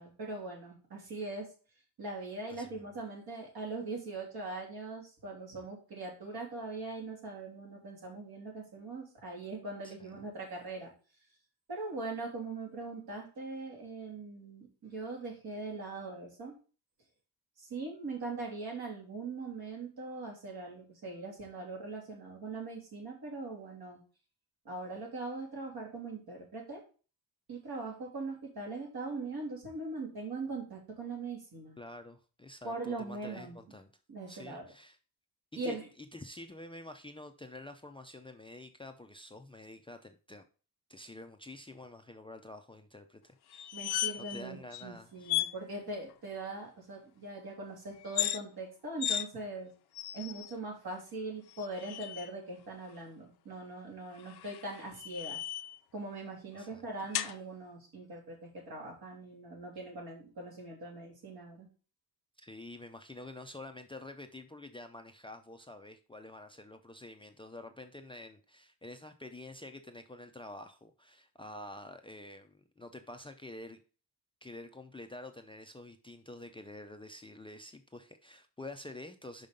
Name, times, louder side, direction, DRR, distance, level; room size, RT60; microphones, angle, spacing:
voice 1, 0.0-1.4 2.0-10.9 11.7-16.5 17.6-24.0 24.6-26.8 27.5-31.8 32.6-33.6 34.1-34.7 35.5-35.9 43.7-49.7 50.1-55.4 55.9-61.7, right 3 dB, 65° right, 3.3 m, -41 dB
voice 2, 2.5-2.8 9.8-10.1 31.8-33.9 34.3-35.0 35.5-40.5 40.9-43.9 44.2-45.3 56.6-56.9 62.4-73.8 74.4-79.5, left 2 dB, 15° left, 0.5 m, -48 dB
sound 1, 43.5-44.4 44.7-44.8 45.3-45.5 48.0-48.4 49.0-49.3 49.9-50.5 51.5-52.3 54.2-55.8 57.1-57.3, left 11 dB, 65° left, 0.6 m, -35 dB
5.5 x 5.4 x 5.2 m
wide cardioid pair, 130°, 40 cm